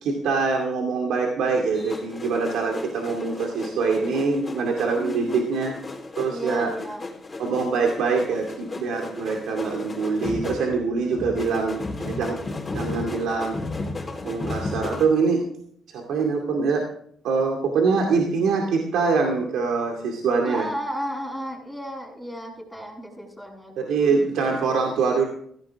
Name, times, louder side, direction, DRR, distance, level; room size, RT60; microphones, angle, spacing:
voice 1, 0.0-5.8 6.2-6.7 7.4-12.4 12.7-13.6 14.2-15.4 15.9-16.9 17.2-20.7 23.8-25.3, right 4 dB, 80° right, 1 dB, 2.4 m, -24 dB
sound 1, 1.7-15.1, left 2 dB, 25° left, 3.8 m, -34 dB
voice 2, 5.0-5.4 6.3-7.0 20.4-24.1, equal, ahead, -2 dB, 7.7 m, -34 dB
16.5 x 16.0 x 3.6 m, 0.64 s
cardioid pair, 90°, 0 cm